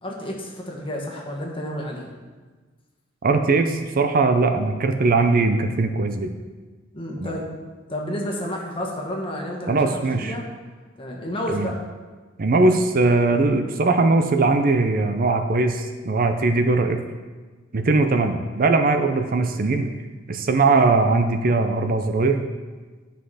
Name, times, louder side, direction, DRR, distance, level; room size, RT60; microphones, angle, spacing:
voice 1, 0.0-2.1 6.9-7.5 7.9-10.4 11.0-11.8, equal, 25° left, -1 dB, 1.5 m, -30 dB
voice 2, 3.2-6.3 7.2-7.3 9.7-10.3 11.5-11.7 12.4-17.0 17.7-19.9 20.3-22.4, right 3 dB, 45° right, 6 dB, 0.5 m, -20 dB
10.0 x 5.8 x 4.9 m, 1.4 s
head